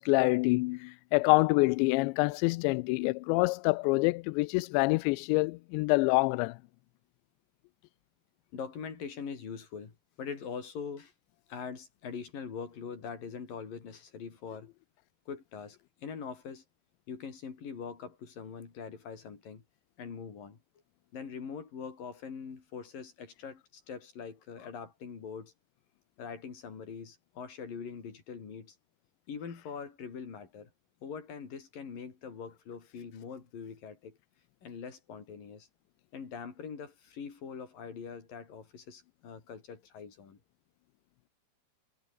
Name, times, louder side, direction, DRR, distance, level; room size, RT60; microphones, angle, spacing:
voice 1, 0.0-6.6, left 25 dB, 85° left, 2.8 m, -26 dB
voice 2, 8.5-11.1 11.5-14.7 15.3-16.6 17.1-19.6 20.0-20.6 21.1-25.5 26.2-28.8 29.3-30.7 31.0-34.2 34.6-35.7 36.1-40.4, left 6 dB, 50° left, 5.5 m, -43 dB
omnidirectional pair, 5.2 m